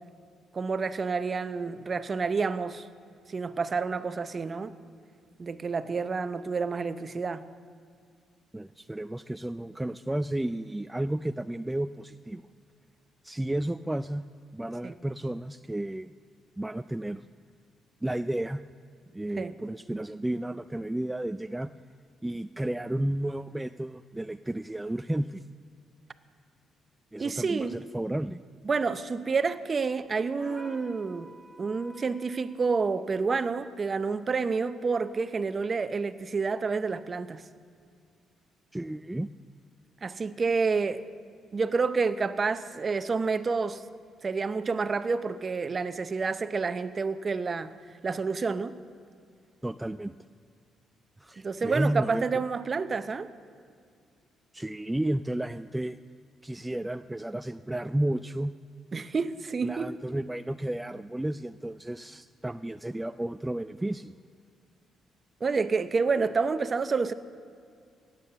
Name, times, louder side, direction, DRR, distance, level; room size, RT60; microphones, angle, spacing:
voice 1, 0.5-2.9 3.3-4.8 5.4-7.4 14.8-14.9 19.4-19.5 27.2-27.8 28.6-31.3 31.6-37.4 40.0-41.0 41.5-43.8 44.2-47.7 48.0-48.8 51.4-53.3 58.9-59.9 65.4-67.1, right 4 dB, 35° right, 12 dB, 0.7 m, -29 dB
voice 2, 8.5-12.4 13.2-14.2 14.5-16.1 16.6-17.3 18.0-18.6 19.1-21.7 22.2-25.4 27.1-28.4 38.7-39.3 49.6-50.2 51.2-52.2 54.5-56.0 56.4-58.5 59.6-64.1, right 1 dB, 10° right, 11 dB, 0.3 m, -32 dB
sound 1, 30.4-32.6, equal, 10° left, 4.4 m, -49 dB
17.0 x 9.1 x 6.8 m, 2.3 s
cardioid pair, 90°, 0 cm